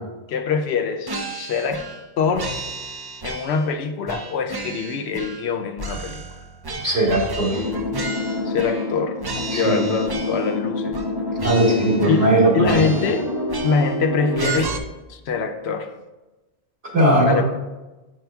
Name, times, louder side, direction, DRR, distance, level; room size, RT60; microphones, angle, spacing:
voice 1, 0.3-1.8 2.2-2.5 3.2-6.2 8.4-11.0 12.1-13.3 13.6-14.8 15.1-15.9 17.2-17.4, left 5 dB, 85° left, 6 dB, 0.9 m, -24 dB
sound 1, 1.1-2.1 2.4-3.7 4.1-5.5 5.8-8.9 9.2-10.6 10.9-11.1 11.4-12.4 12.6-14.0 14.4-14.8, right 3 dB, 35° right, 0.4 m, -33 dB
voice 2, 6.8-7.6 9.5-9.9 11.4-12.8 16.9-17.4, right 1 dB, 75° right, -4 dB, 2.3 m, -18 dB
sound 2, 7.5-14.6, left 2 dB, 35° left, 2.3 m, -27 dB
9.1 x 6.2 x 2.3 m, 1.1 s
omnidirectional pair, 1.1 m